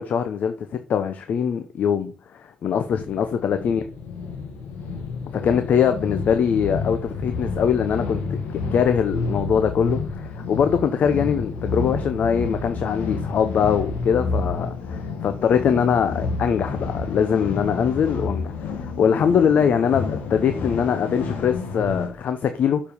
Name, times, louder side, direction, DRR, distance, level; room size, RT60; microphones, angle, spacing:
voice 1, 0.0-3.8 5.3-22.8, left 7 dB, 70° left, 0.7 m, -22 dB
sound 1, 2.7-22.1, left 4 dB, 90° left, 1.5 m, -30 dB
6.9 x 5.0 x 5.4 m
supercardioid pair, 65°, 3 cm